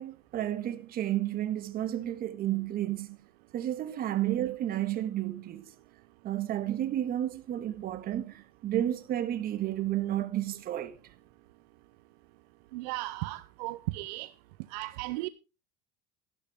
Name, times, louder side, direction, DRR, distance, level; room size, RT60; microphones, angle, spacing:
voice 1, 0.0-3.2 3.5-5.7 6.2-11.0, right 12 dB, 45° right, 1.6 m, -31 dB
voice 2, 12.7-14.3 14.7-15.3, right 20 dB, 75° right, 0.7 m, -35 dB
13.5 x 11.5 x 3.6 m
supercardioid pair, 115°, 21 cm